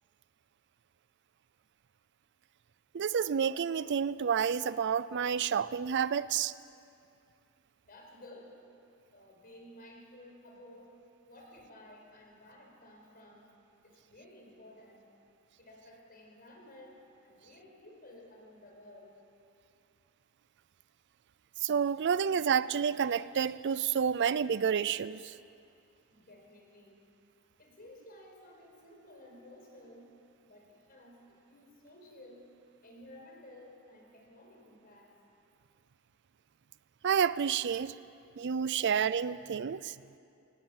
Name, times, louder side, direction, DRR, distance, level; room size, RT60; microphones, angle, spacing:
voice 1, 2.9-6.5 21.6-25.3 37.0-38.0 38.4-39.9, right 7 dB, 55° right, 0.4 m, -29 dB
voice 2, 7.9-8.5 9.1-10.9 11.3-13.4 13.8-15.0 15.6-17.0 17.2-19.1 26.1-27.0 27.6-30.1 30.4-32.5 32.8-35.1, left 1 dB, 45° left, 5.0 m, -54 dB
23.5 x 18.5 x 7.3 m
head